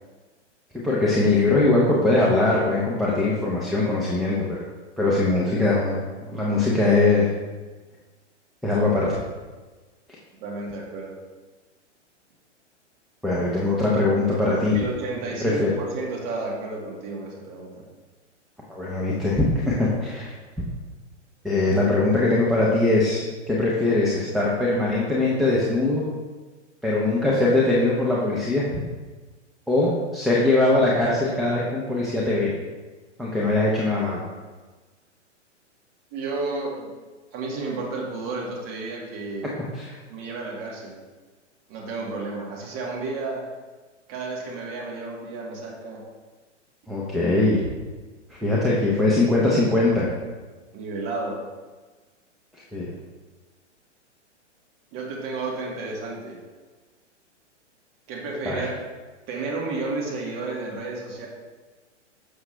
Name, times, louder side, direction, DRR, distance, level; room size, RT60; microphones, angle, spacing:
voice 1, 0.7-4.6 5.0-6.0 6.3-7.3 8.6-9.1 13.2-14.8 15.4-15.7 18.7-20.3 21.4-26.0 26.8-28.6 29.7-32.5 33.2-34.2 39.7-40.0 46.9-47.6 48.3-50.1 52.7-52.9 58.5-58.7, left 2 dB, ahead, -5 dB, 0.4 m, -21 dB
voice 2, 10.4-11.1 14.7-17.9 36.1-36.9 37.3-39.5 40.1-41.0 41.7-43.4 44.1-46.0 50.7-51.4 54.9-56.4 58.1-58.7 59.3-61.3, right 3 dB, 35° right, -2 dB, 1.8 m, -32 dB
7.2 x 6.1 x 3.2 m, 1.3 s
hypercardioid pair, 130°, 36 cm